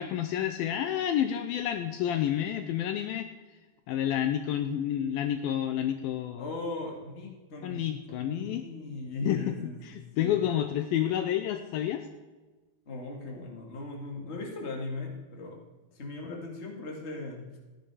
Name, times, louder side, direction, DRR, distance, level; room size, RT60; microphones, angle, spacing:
voice 1, 0.0-3.3 3.9-6.5 7.6-8.6 9.3-9.5 9.8-12.0, left 10 dB, 80° left, 8 dB, 2.2 m, -29 dB
voice 2, 6.4-10.4 12.8-15.6 15.9-17.6, left 3 dB, 25° left, 0 dB, 1.6 m, -38 dB
15.0 x 10.5 x 4.9 m, 1.2 s
omnidirectional pair, 4.6 m